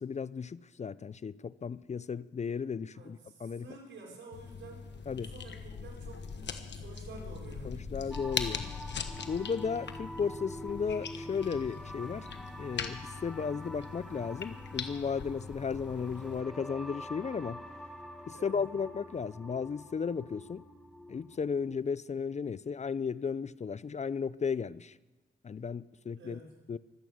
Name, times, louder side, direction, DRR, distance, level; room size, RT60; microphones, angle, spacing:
voice 1, 0.0-3.7 5.1-5.3 7.6-8.7 9.3-12.3 12.6-17.6 18.2-20.6 21.1-25.0 25.4-26.4 26.7-26.8, left 6 dB, 35° left, 0.5 m, -35 dB
voice 2, 2.9-4.9 5.2-8.1 18.3-18.6 26.2-26.5, right 3 dB, 85° right, 4.7 m, -50 dB
sound 1, 4.3-16.4, left 6 dB, 65° left, 1.3 m, -41 dB
sound 2, 8.1-21.7, equal, ahead, 1.8 m, -46 dB
24.5 x 9.0 x 6.2 m
cardioid pair, 70°, 19 cm